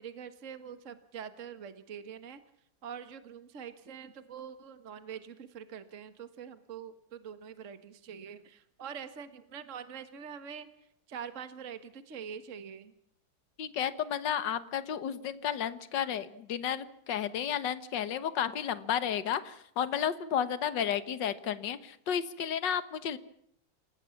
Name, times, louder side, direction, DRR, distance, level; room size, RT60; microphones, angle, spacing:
voice 1, 0.0-2.4 2.8-10.7 11.1-12.9, right 7 dB, 40° right, 10 dB, 1.7 m, -44 dB
voice 2, 13.6-23.2, left 9 dB, 65° left, 13 dB, 1.9 m, -32 dB
27.5 x 19.0 x 7.2 m, 0.70 s
omnidirectional pair, 2.1 m